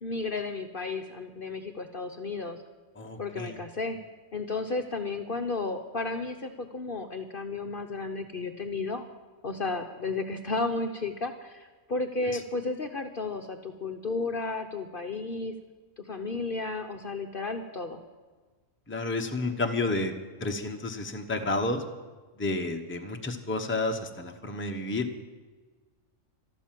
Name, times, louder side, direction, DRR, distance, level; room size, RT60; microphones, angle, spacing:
voice 1, 0.0-2.6 3.2-4.0 4.3-9.0 9.4-15.5 16.0-18.0, left 3 dB, 45° left, 5 dB, 0.9 m, -33 dB
voice 2, 2.9-3.6 12.3-12.4 18.9-20.1 20.4-21.8 22.4-25.1, left 2 dB, 10° left, 4 dB, 0.9 m, -30 dB
13.5 x 12.5 x 7.6 m, 1.3 s
omnidirectional pair, 1.4 m